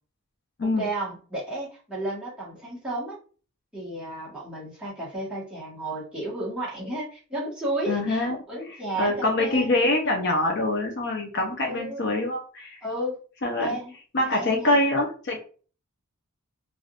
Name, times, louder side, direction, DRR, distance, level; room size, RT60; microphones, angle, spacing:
voice 1, 0.8-3.2 3.7-9.7 11.6-12.0 12.8-13.2 13.6-13.9 14.2-14.8, right 1 dB, 5° right, -8 dB, 1.2 m, -32 dB
voice 2, 7.9-8.4 9.0-12.8 13.4-13.8 14.1-15.4, left 2 dB, 50° left, 1 dB, 0.6 m, -24 dB
3.4 x 2.4 x 2.4 m, 0.40 s
head